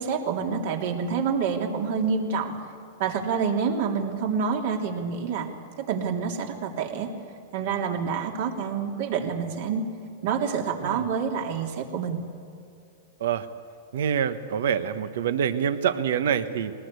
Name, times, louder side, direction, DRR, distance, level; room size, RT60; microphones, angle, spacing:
voice 1, 0.0-2.5 3.0-5.5 5.8-7.1 7.5-9.8 10.2-12.2, right 6 dB, 65° right, 2 dB, 3.1 m, -27 dB
voice 2, 13.9-16.7, right 8 dB, 80° right, 11 dB, 1.2 m, -26 dB
22.0 x 19.0 x 8.3 m, 2.5 s
hypercardioid pair, 135°, 0 cm